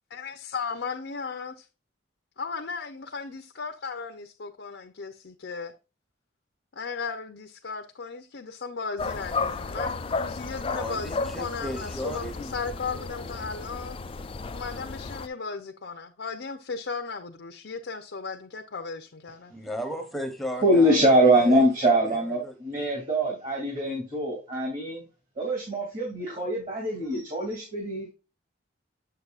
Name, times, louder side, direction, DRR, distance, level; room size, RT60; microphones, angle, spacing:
voice 1, 0.1-1.5 2.4-5.7 6.8-14.0 14.5-19.5, left 5 dB, 65° left, 0.6 m, -36 dB
sound 1, 9.0-15.3, left 4 dB, 30° left, 0.3 m, -33 dB
voice 2, 10.7-12.5 12.9-13.0 13.4-13.5 19.5-21.7 22.1-22.5, equal, ahead, 0.9 m, -36 dB
voice 3, 20.6-25.1 25.4-28.1, right 1 dB, 40° right, 2.6 m, -23 dB
7.6 x 6.7 x 2.4 m
head